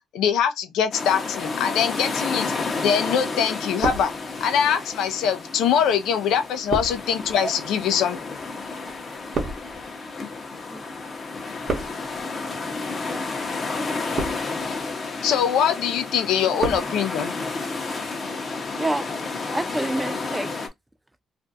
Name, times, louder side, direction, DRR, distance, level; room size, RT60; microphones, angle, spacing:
voice 1, 0.1-2.5 2.8-4.1 4.4-8.2 15.2-17.3, left 8 dB, 85° left, 0.5 m, -23 dB
sound 1, 0.9-20.7, left 3 dB, 35° left, 0.7 m, -31 dB
sound 2, 3.1-3.3 3.5-4.6 5.3-10.9 11.2-12.2 12.9-13.2 13.9-14.7 15.1-15.6 15.9-16.9 17.2-17.3, right 3 dB, 50° right, 0.8 m, -33 dB
voice 2, 13.0-13.6 18.7-19.1 19.4-20.5, right 1 dB, 10° right, 0.3 m, -29 dB
2.5 x 2.2 x 2.5 m
cardioid pair, 90°, 0 cm